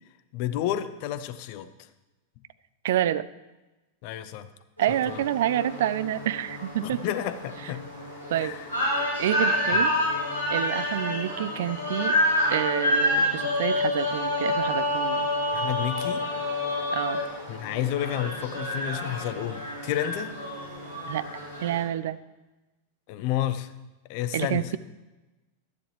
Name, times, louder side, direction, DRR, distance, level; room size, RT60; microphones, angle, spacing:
voice 1, 0.3-1.9 4.0-4.5 5.1-5.2 6.8-7.8 8.4-8.7 9.7-9.9 15.5-16.2 17.5-20.3 23.1-23.7 24.1-24.7, left 12 dB, 45° left, 13 dB, 0.6 m, -31 dB
voice 2, 2.8-3.3 4.8-7.0 8.3-8.6 9.2-9.9 10.5-12.2 12.5-15.3 16.9-17.2 21.1-21.3 21.6-22.2 24.3-24.8, right 12 dB, 55° right, 15 dB, 0.4 m, -28 dB
sound 1, 4.8-21.8, left 1 dB, 85° right, 2.9 m, -28 dB
12.5 x 10.5 x 3.3 m, 1.1 s
figure-of-eight pair, 90°, 0 cm